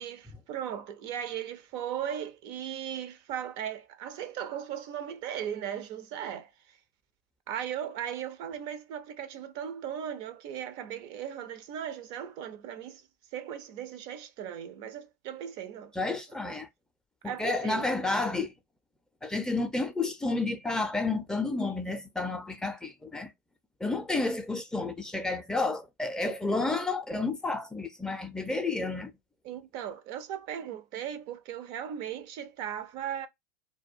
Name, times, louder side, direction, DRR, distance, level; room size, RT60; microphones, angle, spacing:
voice 1, 0.0-6.5 7.5-13.1 13.3-15.9 16.4-16.5 17.2-17.9 29.4-33.3, right 9 dB, 50° right, 0.5 m, -37 dB
voice 2, 15.9-16.7 17.2-18.5 19.2-23.3 23.8-29.1, left 3 dB, 5° left, 0.5 m, -31 dB
2.3 x 2.1 x 2.5 m
hypercardioid pair, 95°, 10 cm